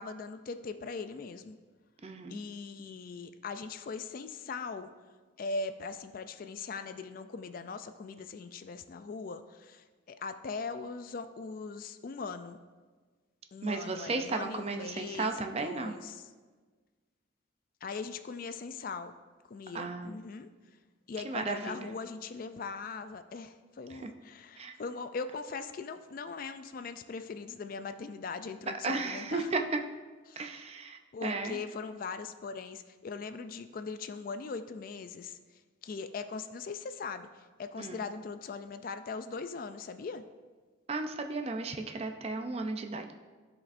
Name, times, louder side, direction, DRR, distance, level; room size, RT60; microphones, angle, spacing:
voice 1, 0.0-1.6 2.3-4.9 5.4-12.6 13.5-16.3 17.8-19.1 19.5-20.5 21.1-29.5 30.3-30.5 31.1-35.4 35.8-37.3 37.6-40.2, left 4 dB, 45° left, 10 dB, 0.3 m, -40 dB
voice 2, 2.0-2.4 13.6-15.9 19.7-20.1 21.2-21.9 23.9-24.1 24.6-24.7 28.8-29.8 30.4-31.6 37.8-38.0 40.9-43.1, right 3 dB, 30° right, 5 dB, 0.4 m, -34 dB
15.0 x 5.0 x 2.6 m, 1.4 s
head